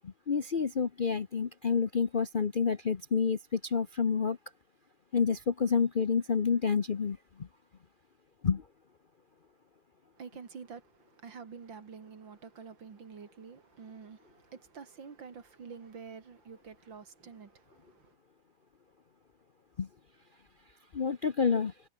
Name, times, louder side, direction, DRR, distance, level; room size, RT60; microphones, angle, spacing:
voice 1, 0.3-4.4 5.1-7.2 8.4-8.6 19.8-19.9 20.9-21.7, left 6 dB, 75° left, 0.4 m, -28 dB
voice 2, 10.2-18.1, right 6 dB, 60° right, 3.1 m, -48 dB
omnidirectional pair, 2.3 m